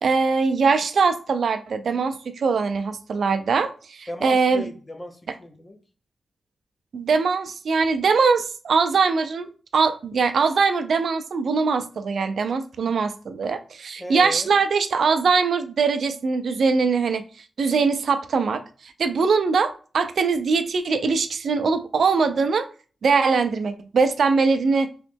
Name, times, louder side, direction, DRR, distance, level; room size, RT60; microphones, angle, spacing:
voice 1, 0.0-4.6 6.9-17.2 17.6-22.7 23.0-24.9, right 5 dB, 65° right, 0.4 m, -22 dB
voice 2, 4.1-5.8 14.0-14.6, left 1 dB, 25° left, 0.6 m, -36 dB
3.0 x 3.0 x 3.3 m
wide cardioid pair, 125°, 0 cm